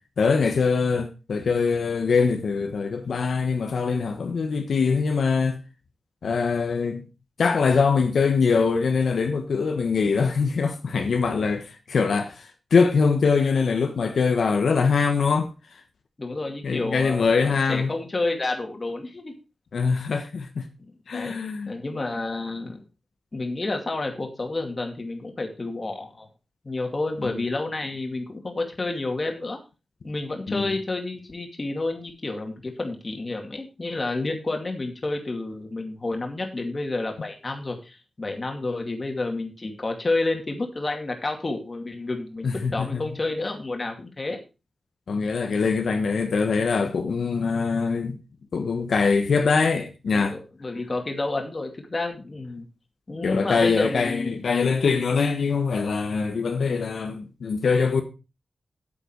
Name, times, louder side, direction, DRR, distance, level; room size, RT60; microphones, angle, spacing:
voice 1, 0.2-5.6 6.2-7.1 7.4-15.5 16.6-17.9 19.7-20.7 21.1-21.7 27.2-27.4 30.5-30.7 42.4-43.0 45.1-48.2 48.5-50.4 53.2-58.0, left 5 dB, 85° left, 1.2 m, -23 dB
voice 2, 16.2-19.4 21.1-21.4 21.7-22.8 23.3-26.3 26.6-29.6 30.0-44.4 50.1-52.7 53.1-54.3, left 2 dB, 35° left, 2.3 m, -30 dB
8.6 x 7.9 x 4.6 m
wide cardioid pair, 130°, 0 cm